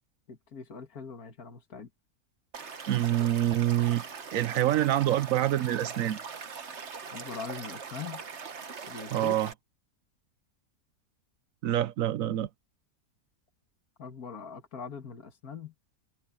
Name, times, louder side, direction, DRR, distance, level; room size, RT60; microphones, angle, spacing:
voice 1, 0.3-1.9 7.1-8.2 8.9-9.4 14.0-15.7, left 5 dB, 75° left, 2.4 m, -42 dB
Stream / Liquid, 2.5-9.5, right 5 dB, 50° right, 1.6 m, -41 dB
voice 2, 2.9-4.0 4.3-6.2 9.1-9.5 11.6-12.5, right 13 dB, 70° right, 1.0 m, -26 dB
omnidirectional pair, 1.6 m